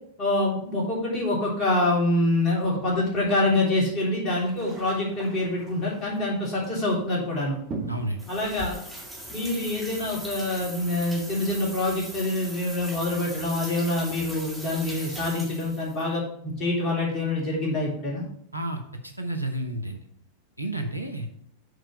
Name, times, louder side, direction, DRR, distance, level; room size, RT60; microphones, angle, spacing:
voice 1, 0.2-7.6 8.3-8.8 9.3-18.2, left 2 dB, 35° left, -4 dB, 3.4 m, -26 dB
sound 1, 4.3-9.5, right 3 dB, 30° right, 1.8 m, -42 dB
voice 2, 7.9-8.2 18.5-20.0 20.6-21.3, right 1 dB, 90° right, 5 dB, 0.9 m, -31 dB
sound 2, 8.2-16.0, equal, ahead, 1.7 m, -40 dB
6.6 x 4.5 x 6.2 m, 0.67 s
figure-of-eight pair, 90°, 0 cm